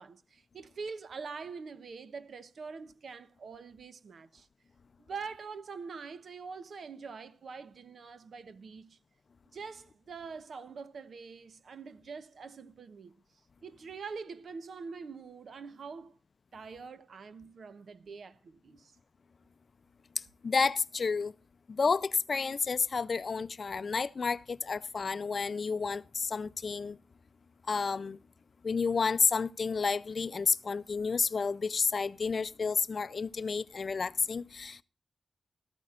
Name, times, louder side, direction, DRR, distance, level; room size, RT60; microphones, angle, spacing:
voice 1, 0.0-4.5 5.0-9.0 9.5-13.1 13.6-16.2 16.5-18.9, right 5 dB, 65° right, 0.9 m, -44 dB
voice 2, 20.2-21.3 21.7-27.0 27.7-28.2 28.6-34.8, left 5 dB, 45° left, 0.5 m, -30 dB
17.0 x 14.0 x 2.5 m
wide cardioid pair, 175°, 0 cm